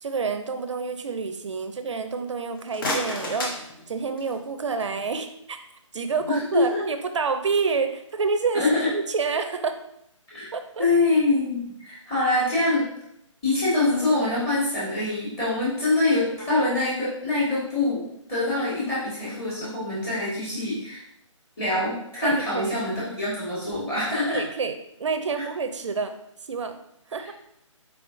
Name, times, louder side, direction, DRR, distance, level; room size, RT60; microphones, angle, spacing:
voice 1, 0.0-5.6 5.9-8.6 8.9-9.8 10.5-10.9 22.2-22.8 24.3-26.2 26.5-26.8 27.1-27.3, right 5 dB, 65° right, 8 dB, 0.6 m, -28 dB
sound 1, 2.4-4.5, left 1 dB, 40° left, 1.0 m, -32 dB
voice 2, 6.3-6.8 8.5-8.9 10.3-10.5 10.8-12.9 13.4-21.0 21.6-24.4, left 2 dB, 15° left, -9 dB, 1.7 m, -24 dB
4.6 x 3.6 x 2.6 m, 0.74 s
figure-of-eight pair, 155°, 17 cm